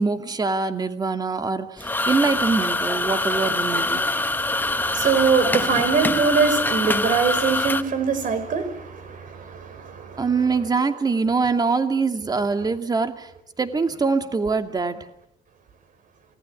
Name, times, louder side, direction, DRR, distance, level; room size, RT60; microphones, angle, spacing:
voice 1, 0.0-4.0 10.2-13.3 13.6-15.0, right 4 dB, 25° right, 7 dB, 2.5 m, -23 dB
sound 1, 1.8-7.8, left 2 dB, 10° left, 1.1 m, -24 dB
voice 2, 4.4-10.3, right 5 dB, 50° right, 10 dB, 5.9 m, -23 dB
28.0 x 19.0 x 9.9 m, 0.81 s
cardioid pair, 110°, 17 cm